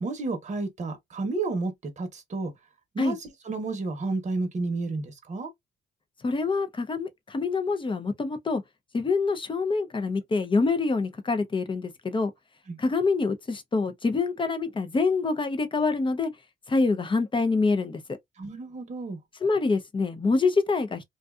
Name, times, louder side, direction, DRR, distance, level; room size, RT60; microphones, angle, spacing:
voice 1, 0.0-2.5 2.9-5.5 12.7-12.8 18.4-19.2, right 3 dB, 35° right, 0.9 m, -31 dB
voice 2, 6.2-8.6 8.9-12.3 12.8-16.3 16.7-18.0 19.4-21.0, left 3 dB, 25° left, 0.6 m, -26 dB
2.6 x 2.2 x 2.3 m
cardioid pair, 90°, 20 cm